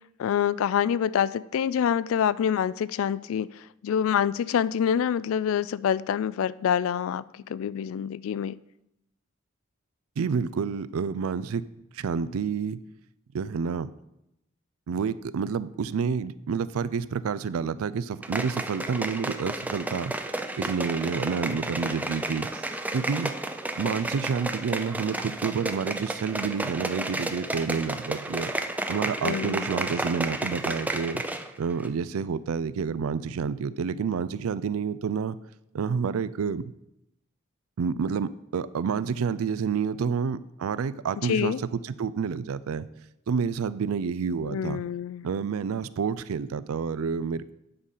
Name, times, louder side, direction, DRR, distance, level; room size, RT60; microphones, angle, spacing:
voice 1, 0.2-3.5 3.8-7.2 7.5-8.5 29.2-29.7 41.2-41.6 44.4-45.3, left 8 dB, 65° left, 19 dB, 0.3 m, -26 dB
voice 2, 10.2-11.7 11.9-12.8 13.3-13.9 14.9-20.1 20.6-22.7 22.9-23.3 23.8-28.5 28.9-31.2 31.6-35.4 35.7-36.7 37.8-42.9 43.3-44.8 45.2-47.5, right 6 dB, 80° right, 17 dB, 0.4 m, -29 dB
sound 1, 18.2-31.5 31.8-31.9, right 2 dB, 5° right, 0.4 m, -32 dB
8.9 x 4.9 x 5.5 m, 0.84 s
head